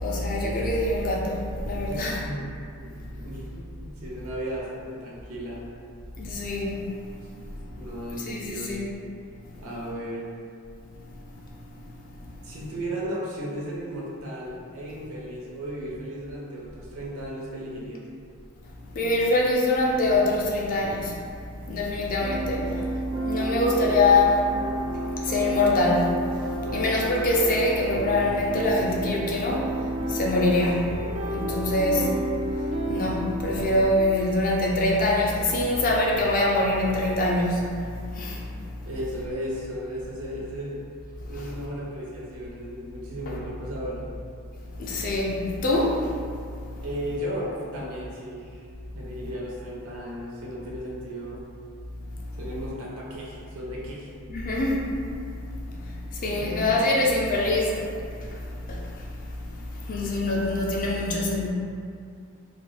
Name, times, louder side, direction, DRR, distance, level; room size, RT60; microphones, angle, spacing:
voice 1, 0.0-2.2 6.2-6.8 8.3-8.8 18.9-21.2 21.7-22.8 23.2-24.4 25.0-26.2 26.7-31.0 31.3-32.1 32.9-38.4 43.3-43.4 44.8-46.2 54.3-54.9 55.8-58.4 58.7-59.1 59.6-61.5, left 2 dB, 40° left, -3 dB, 0.4 m, -24 dB
voice 2, 1.9-2.5 2.7-5.6 7.8-8.8 9.6-10.3 12.4-18.1 38.8-40.8 41.3-44.1 46.8-48.6 48.9-51.4 52.4-54.1 56.4-56.7, equal, 75° right, -4 dB, 0.6 m, -35 dB
sound 1, 22.2-33.9, right 1 dB, 35° right, 0.4 m, -31 dB
2.4 x 2.2 x 3.2 m, 2.3 s
head